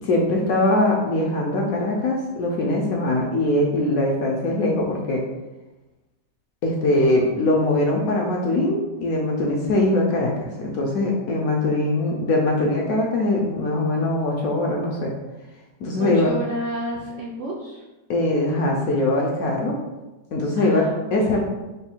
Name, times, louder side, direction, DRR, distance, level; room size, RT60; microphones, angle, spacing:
voice 1, 0.0-5.2 6.6-15.1 15.8-16.3 18.1-19.7 20.3-20.8 21.1-21.4, left 2 dB, 70° left, -1 dB, 0.9 m, -22 dB
voice 2, 16.0-17.8 20.6-21.4, right 1 dB, 70° right, -4 dB, 0.7 m, -31 dB
3.4 x 2.3 x 4.3 m, 1.1 s
omnidirectional pair, 1.9 m